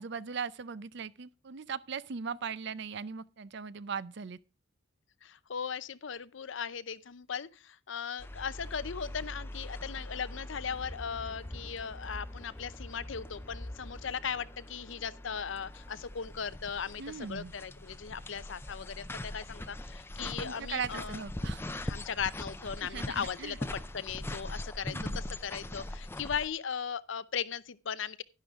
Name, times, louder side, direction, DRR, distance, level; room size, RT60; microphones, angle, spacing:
voice 1, 0.0-4.4 17.0-17.5 20.4-21.7 22.8-23.6 24.9-25.1, right 6 dB, 60° right, 0.5 m, -39 dB
voice 2, 5.2-21.2 21.8-28.2, left 7 dB, 65° left, 0.6 m, -38 dB
sound 1, 8.2-26.5, left 1 dB, 10° left, 0.5 m, -42 dB
11.5 x 11.0 x 3.6 m
head